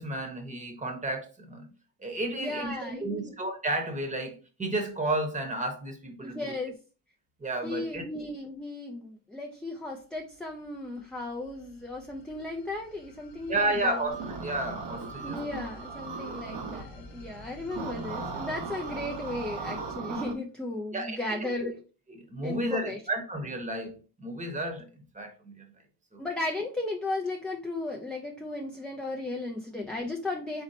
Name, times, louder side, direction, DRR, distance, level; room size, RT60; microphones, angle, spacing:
voice 1, 0.0-1.7 2.0-6.5 7.4-8.0 13.5-15.6 20.9-21.7 22.1-24.9 25.1-25.7 26.1-26.2, right 1 dB, 20° right, 0.9 m, -32 dB
voice 2, 2.3-3.3 6.2-6.8 7.6-14.0 15.2-21.8 22.4-23.0 26.2-30.6, left 2 dB, ahead, 0.3 m, -35 dB
sound 1, 9.9-20.0, left 3 dB, 80° left, 1.0 m, -49 dB
sound 2, 14.1-16.8 17.7-20.3, right 4 dB, 85° right, 1.0 m, -37 dB
4.2 x 4.1 x 2.6 m
cardioid pair, 165°, 41 cm